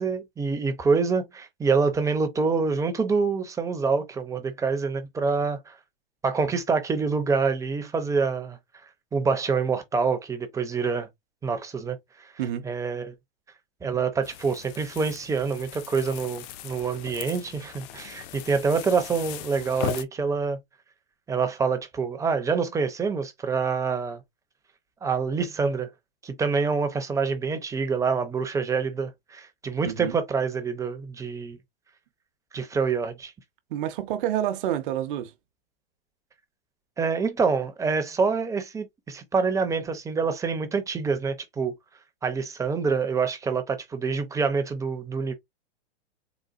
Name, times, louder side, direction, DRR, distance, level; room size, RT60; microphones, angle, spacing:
voice 1, 0.0-5.7 6.2-8.6 9.1-11.1 11.4-12.0 12.6-13.1 13.8-20.6 21.3-24.2 25.0-25.9 26.2-31.6 32.5-33.3 37.0-41.7 42.2-45.3, right 5 dB, 10° right, 0.6 m, -26 dB
sound 1, 14.2-20.0, left 11 dB, 45° left, 0.5 m, -38 dB
voice 2, 29.8-30.2 33.7-35.3, right 11 dB, 60° right, 0.8 m, -28 dB
4.0 x 2.3 x 2.4 m
hypercardioid pair, 125°, 30 cm